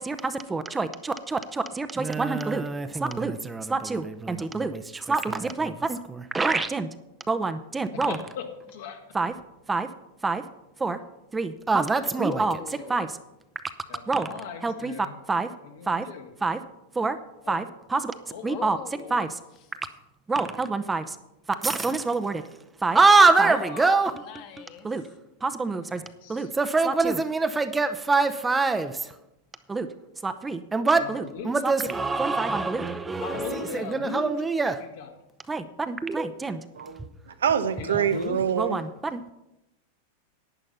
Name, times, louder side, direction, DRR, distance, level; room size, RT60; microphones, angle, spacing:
voice 1, 0.0-6.9 7.3-8.2 9.1-9.3 9.7-9.9 10.2-10.4 10.8-11.0 11.3-12.6 12.9-13.1 14.1-14.3 14.6-14.9 15.3-15.5 15.9-16.1 16.4-16.6 16.9-17.2 17.5-18.1 18.4-18.8 19.1-19.3 20.3-21.2 21.6-22.4 22.8-24.1 24.8-25.0 25.4-26.0 26.3-29.1 29.7-29.9 30.2-34.8 35.5-36.6 38.6-39.2, right 3 dB, 15° right, 0.7 m, -25 dB
voice 2, 7.9-9.0 13.9-15.1 15.6-16.3 17.4-17.6 18.3-18.4 25.9-26.5 31.0-31.5 33.2-34.3 35.0-35.1 37.8-38.4, left 6 dB, 70° left, 2.1 m, -38 dB
voice 3, 12.1-13.1 18.4-19.3 23.1-24.9, left 7 dB, 50° left, 1.7 m, -39 dB
voice 4, 36.7-38.8, right 8 dB, 85° right, 0.8 m, -26 dB
11.0 x 8.9 x 5.5 m
hypercardioid pair, 115°, 0 cm